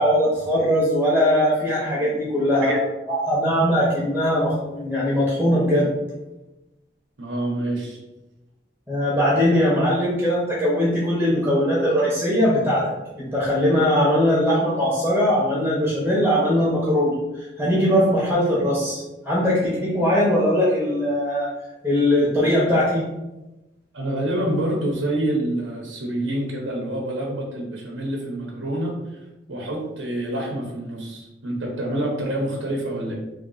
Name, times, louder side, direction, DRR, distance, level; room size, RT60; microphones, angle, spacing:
voice 1, 0.0-2.8 3.1-5.9 8.9-21.5 21.8-23.0, equal, 10° right, -6 dB, 0.9 m, -20 dB
voice 2, 7.2-8.0 23.9-29.2 29.5-33.1, right 1 dB, 80° right, -1 dB, 0.8 m, -27 dB
3.2 x 2.8 x 3.9 m, 1.0 s
head